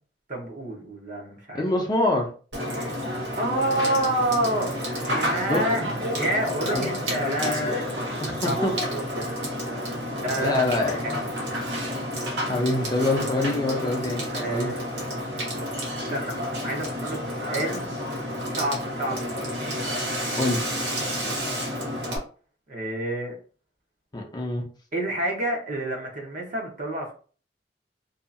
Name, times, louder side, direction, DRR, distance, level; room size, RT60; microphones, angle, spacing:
voice 1, 0.3-1.6 3.4-4.8 5.1-9.3 10.2-11.3 14.3-14.9 15.6-17.9 18.5-19.4 22.7-23.4 24.9-27.1, right 1 dB, 50° right, 0 dB, 0.8 m, -29 dB
voice 2, 1.5-2.3 5.5-5.6 6.7-6.9 8.2-8.7 10.4-11.2 12.5-14.2 14.5-14.7 20.4-20.6 24.1-24.6, left 2 dB, 25° left, 0 dB, 0.5 m, -25 dB
Water / Water tap faucet / Sink (filling or washing), 2.5-22.2, equal, 80° right, 1.0 m, -30 dB
2.7 x 2.4 x 2.5 m, 0.40 s
head